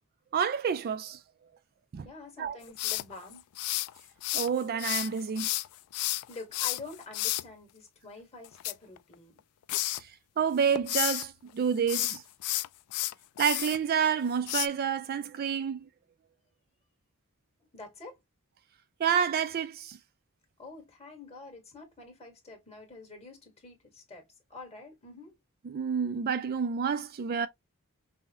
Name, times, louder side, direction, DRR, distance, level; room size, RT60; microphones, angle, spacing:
voice 1, 0.3-1.2 1.9-2.1 2.4-2.6 4.3-5.5 10.0-10.1 10.4-12.2 13.4-15.9 19.0-20.0 25.6-27.5, right 7 dB, 45° right, 0.3 m, -29 dB
voice 2, 2.0-3.4 6.3-9.4 17.7-18.2 20.6-25.3, left 3 dB, 30° left, 1.5 m, -47 dB
sound 1, 2.8-4.5 4.8-7.4 8.4-9.4 9.7-10.0 10.5-11.3 11.8-13.8 14.5-14.7, left 17 dB, 80° left, 0.3 m, -31 dB
5.3 x 2.1 x 2.8 m
head